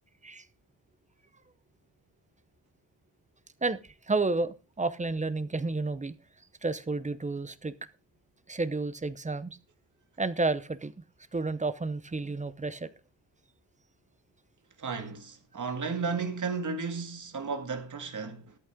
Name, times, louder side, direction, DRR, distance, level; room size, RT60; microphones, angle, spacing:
voice 1, 4.1-6.1 6.6-7.7 8.5-9.6 10.2-10.9 11.3-12.9, right 3 dB, 15° right, 0.7 m, -31 dB
voice 2, 14.8-18.6, right 5 dB, 40° right, 2.1 m, -34 dB
13.5 x 11.0 x 3.7 m
wide cardioid pair, 170°, 45 cm